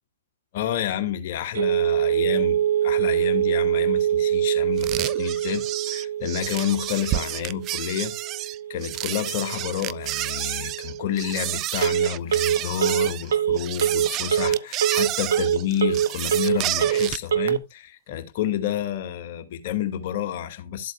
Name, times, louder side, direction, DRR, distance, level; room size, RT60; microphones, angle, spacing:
voice 1, 0.5-20.9, left 10 dB, 50° left, 2.0 m, -30 dB
Telephone, 1.5-17.6, right 9 dB, 70° right, 0.9 m, -25 dB
sound 1, 4.8-17.3, right 16 dB, 30° right, 0.4 m, -30 dB
12.5 x 7.9 x 2.3 m
figure-of-eight pair, 115°, 0 cm